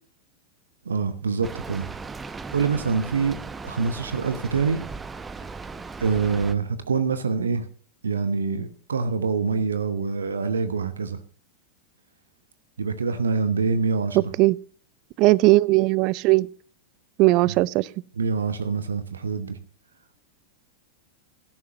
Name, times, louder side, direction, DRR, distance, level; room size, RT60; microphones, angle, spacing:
voice 1, 0.8-1.9 2.5-4.8 6.0-7.7 8.0-11.2 12.8-14.3 17.4-17.6 18.2-19.6, right 5 dB, 70° right, 1.0 m, -25 dB
Rain, 1.4-6.5, right 4 dB, 15° right, 0.8 m, -37 dB
voice 2, 15.2-16.5 17.2-17.9, right 20 dB, 40° right, 0.5 m, -18 dB
16.5 x 13.5 x 2.8 m
figure-of-eight pair, 90°, 0 cm